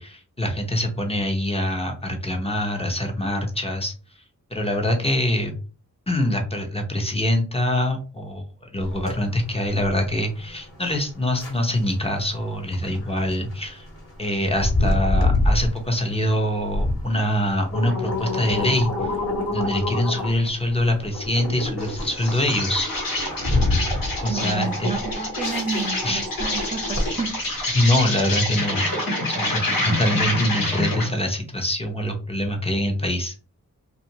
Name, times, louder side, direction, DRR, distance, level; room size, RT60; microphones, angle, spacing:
voice 1, 0.0-3.9 4.5-5.5 6.1-8.4 8.7-13.9 14.2-18.9 19.5-22.9 24.2-24.9 26.0-26.2 27.7-28.8 29.3-33.3, left 1 dB, 15° left, 2 dB, 0.8 m, -24 dB
sound 1, 8.8-27.6, left 2 dB, 40° left, 1.3 m, -27 dB
Insect, 21.8-31.2, left 2 dB, 80° left, 1.3 m, -27 dB
voice 2, 24.3-27.4, right 3 dB, 20° right, 2 dB, 0.5 m, -30 dB
2.5 x 2.5 x 2.9 m, 0.36 s
cardioid pair, 65°, 34 cm